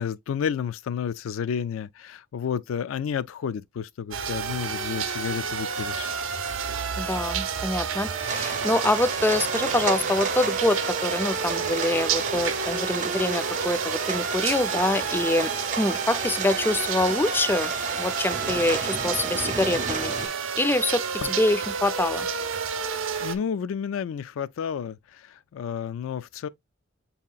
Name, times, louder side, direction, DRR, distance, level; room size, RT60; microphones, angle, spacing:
voice 1, 0.0-6.1 23.2-26.5, left 7 dB, 85° left, 0.3 m, -31 dB
sound 1, 4.1-23.4, right 6 dB, 85° right, 0.6 m, -30 dB
voice 2, 7.0-15.5 15.8-17.7 18.0-22.3, left 2 dB, 10° left, 0.3 m, -25 dB
sound 2, 8.3-20.3, right 5 dB, 40° right, 0.7 m, -32 dB
7.3 x 2.8 x 2.3 m
head